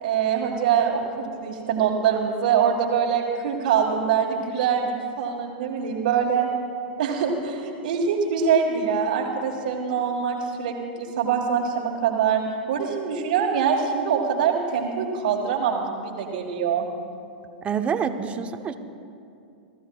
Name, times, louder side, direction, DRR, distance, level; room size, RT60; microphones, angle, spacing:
voice 1, 0.0-6.5 7.0-12.4 12.7-16.9, right 7 dB, 65° right, -4 dB, 1.6 m, -24 dB
voice 2, 17.6-18.8, right 7 dB, 25° right, 8 dB, 0.8 m, -27 dB
29.5 x 14.0 x 2.4 m, 2.5 s
hypercardioid pair, 100°, 5 cm